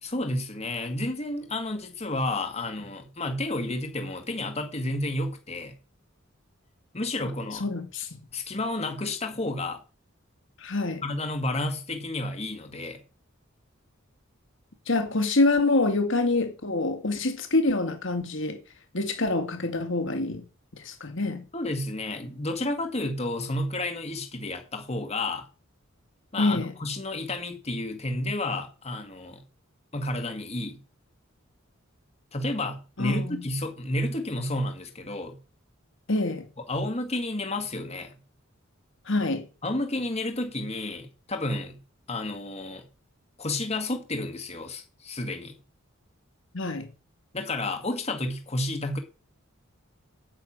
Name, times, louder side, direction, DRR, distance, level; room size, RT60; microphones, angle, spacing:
voice 1, 0.0-5.7 6.9-7.7 8.3-9.8 11.0-13.0 21.5-25.5 26.3-29.4 29.9-30.8 32.3-35.4 36.6-38.2 39.6-41.8 42.1-42.8 43.4-45.6 47.3-49.0, left 2 dB, 30° left, 2.0 m, -31 dB
voice 2, 7.6-8.2 10.6-11.0 14.9-18.6 18.9-20.4 20.8-21.4 26.4-26.7 33.0-33.4 36.1-36.4 39.1-39.4 46.5-46.9, left 2 dB, 65° left, 2.1 m, -26 dB
9.1 x 6.8 x 8.8 m
head